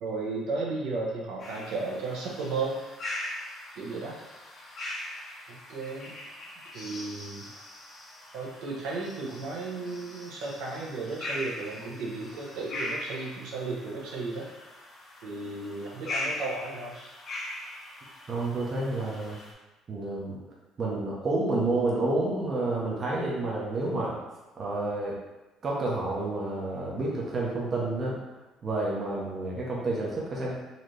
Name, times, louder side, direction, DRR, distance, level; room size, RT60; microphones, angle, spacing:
voice 1, 0.0-2.8 3.7-4.2 5.5-6.1 6.7-7.6 8.3-14.5 15.2-16.9, right 3 dB, 80° right, -3 dB, 1.0 m, -34 dB
sound 1, 1.4-19.5, left 1 dB, 30° left, 0.7 m, -40 dB
voice 2, 18.3-19.4 19.9-20.4 20.8-24.1 24.6-25.2 25.6-28.2 28.6-30.5, right 2 dB, 25° right, -5 dB, 0.6 m, -29 dB
4.1 x 2.7 x 3.2 m, 1.1 s
cardioid pair, 180°, 0 cm